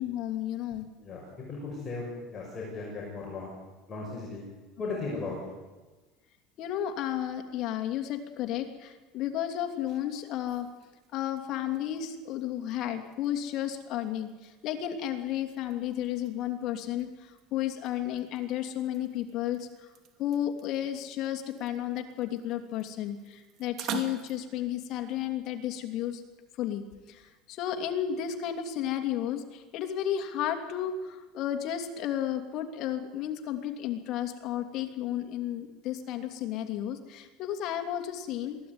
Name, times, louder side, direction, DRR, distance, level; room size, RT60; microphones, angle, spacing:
voice 1, 0.0-0.9 6.6-10.7 11.1-19.9 20.2-26.2 26.6-38.6, left 11 dB, 50° left, 6 dB, 2.8 m, -33 dB
voice 2, 1.0-3.5 3.9-4.4 4.8-5.4, left 3 dB, 25° left, -3 dB, 6.3 m, -36 dB
sound 1, 9.6-24.4, right 9 dB, 45° right, 2.6 m, -48 dB
22.5 x 15.5 x 9.6 m, 1.2 s
cardioid pair, 145°, 0 cm